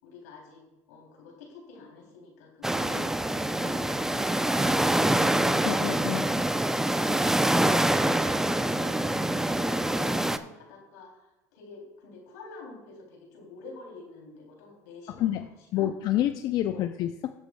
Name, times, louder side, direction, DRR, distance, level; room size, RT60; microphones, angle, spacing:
voice 1, 0.0-5.6 9.5-15.9 16.7-16.9, left 3 dB, 80° left, 0 dB, 3.3 m, -47 dB
sound 1, 2.6-10.4, right 1 dB, 5° right, 0.6 m, -25 dB
voice 2, 5.6-6.3 15.2-15.5 15.7-17.3, left 12 dB, 55° left, 8 dB, 0.6 m, -28 dB
19.0 x 8.0 x 2.3 m, 1.0 s
hypercardioid pair, 85°, 8 cm